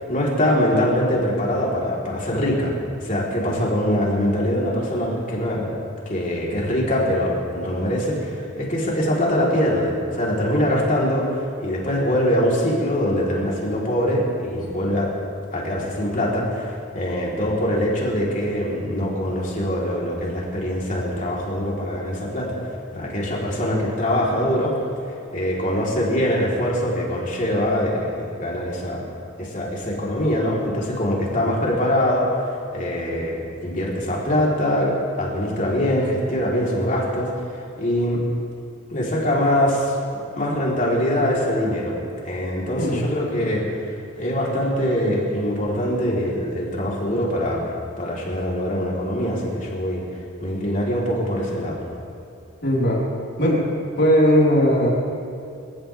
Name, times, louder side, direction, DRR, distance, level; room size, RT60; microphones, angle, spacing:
voice 1, 0.1-2.7 3.0-5.7 6.1-15.1 15.5-24.8 25.3-29.1 29.4-38.2 38.9-39.9 40.4-42.0 42.2-50.0 50.4-51.8, equal, 40° left, -4 dB, 3.7 m, -23 dB
voice 2, 52.6-53.0 53.4-53.6 54.0-54.9, equal, 55° left, -5 dB, 4.5 m, -18 dB
28.0 x 14.5 x 3.5 m, 2.7 s
head